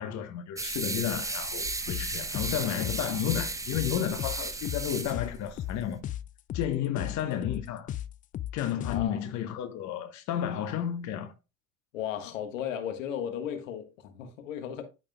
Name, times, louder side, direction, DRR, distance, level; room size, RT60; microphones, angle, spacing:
voice 1, 0.0-6.0 6.5-7.9 8.5-11.3, left 10 dB, 45° left, 1.2 m, -32 dB
sound 1, 0.6-6.0, right 3 dB, 10° right, 0.8 m, -35 dB
sound 2, 1.7-9.0, left 12 dB, 20° left, 0.3 m, -36 dB
voice 2, 8.8-9.2 11.9-14.8, left 9 dB, 70° left, 1.6 m, -35 dB
13.5 x 5.1 x 2.3 m
figure-of-eight pair, 70°, 40 cm